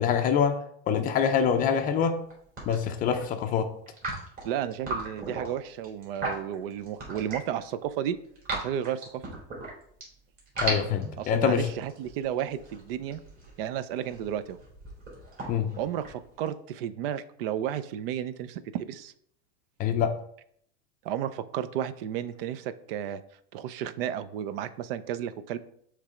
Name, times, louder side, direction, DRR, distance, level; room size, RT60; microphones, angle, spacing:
voice 1, 0.0-2.2 2.6-3.7 10.6-11.7 15.5-15.7 19.8-20.1, left 7 dB, 25° left, 7 dB, 0.5 m, -25 dB
sound 1, 2.1-2.3 2.6-3.2 3.9-7.6 8.0-10.0 10.4-16.5, right 2 dB, 25° right, 2.7 m, -36 dB
voice 2, 4.4-8.2 8.5-9.2 11.2-13.2 13.6-14.6 15.8-19.1 21.0-23.2 23.5-25.6, right 10 dB, 60° right, 14 dB, 0.5 m, -33 dB
6.6 x 3.3 x 4.9 m, 0.67 s
supercardioid pair, 145°, 32 cm